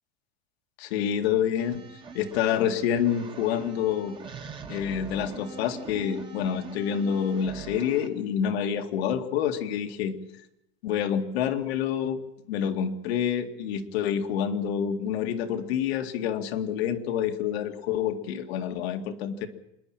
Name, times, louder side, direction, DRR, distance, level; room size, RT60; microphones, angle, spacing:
voice 1, 0.8-1.8 2.1-4.2 4.7-10.1 10.8-12.2 12.5-19.5, left 8 dB, 85° left, 5 dB, 2.3 m, -27 dB
sound 1, 1.6-8.1, right 5 dB, 15° right, 1.4 m, -43 dB
26.5 x 11.0 x 9.0 m, 0.84 s
supercardioid pair, 165°, 31 cm